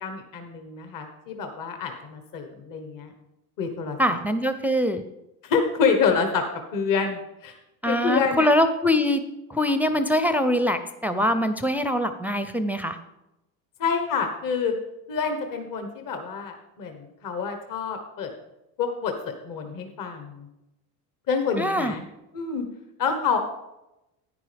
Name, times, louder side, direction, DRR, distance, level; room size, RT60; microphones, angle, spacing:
voice 1, 0.0-3.1 3.6-4.2 5.4-6.4 6.7-7.6 7.8-8.5 13.8-14.7 15.1-18.3 18.8-19.1 19.4-20.5 21.3-22.0 22.3-22.6 23.0-23.4, left 5 dB, 45° left, 5 dB, 1.4 m, -27 dB
voice 2, 4.0-5.0 7.8-9.2 9.5-13.0 21.6-21.9, left 1 dB, 5° right, 8 dB, 0.5 m, -23 dB
10.5 x 9.6 x 3.5 m, 0.92 s
supercardioid pair, 90°, 43 cm